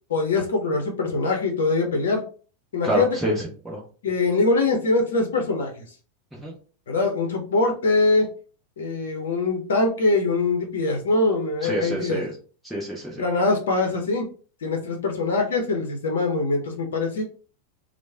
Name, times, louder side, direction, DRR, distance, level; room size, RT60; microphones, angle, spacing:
voice 1, 0.1-2.2 2.7-3.2 4.0-5.8 6.9-8.3 8.8-12.2 13.2-14.3 14.6-17.2, left 3 dB, 60° left, 2 dB, 0.7 m, -23 dB
voice 2, 2.8-3.8 6.3-6.5 11.6-12.3 12.6-13.2, right 1 dB, 5° right, -4 dB, 0.8 m, -27 dB
3.1 x 2.0 x 3.3 m, 0.39 s
figure-of-eight pair, 90°, 0 cm